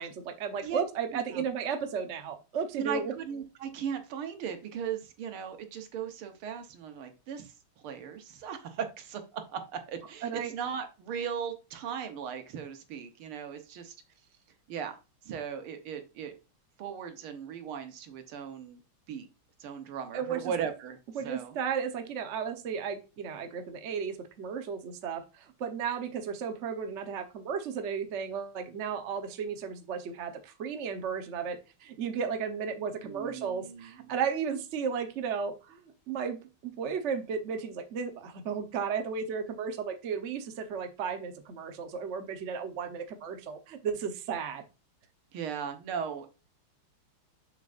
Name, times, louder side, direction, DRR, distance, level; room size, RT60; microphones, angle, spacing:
voice 1, 0.0-3.1 10.2-10.5 20.1-20.5 21.1-44.6, right 6 dB, 50° right, 6 dB, 0.8 m, -34 dB
voice 2, 2.8-7.5 7.8-14.0 14.7-15.0 15.2-16.4 16.8-18.8 19.1-19.3 19.6-21.0 21.2-21.6 33.0-34.1 45.3-46.3, right 7 dB, 75° right, 7 dB, 1.9 m, -37 dB
6.9 x 6.6 x 2.5 m, 0.30 s
omnidirectional pair, 2.4 m